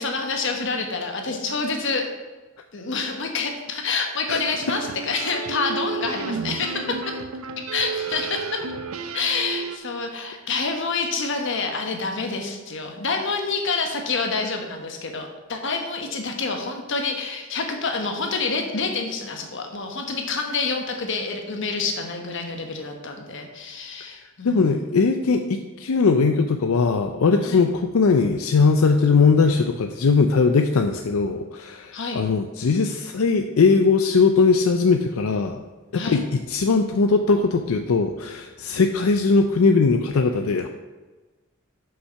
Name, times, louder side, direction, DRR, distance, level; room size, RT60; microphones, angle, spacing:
voice 1, 0.0-2.1 2.7-7.2 7.7-8.6 9.1-25.0 27.4-27.7 31.9-32.2 35.9-36.2, left 4 dB, 60° left, 3 dB, 1.2 m, -27 dB
sound 1, 4.3-9.8, right 5 dB, 90° right, 0.6 m, -32 dB
voice 2, 24.4-35.6 35.9-40.7, left 4 dB, 85° left, 6 dB, 0.5 m, -20 dB
6.5 x 5.5 x 5.7 m, 1.2 s
head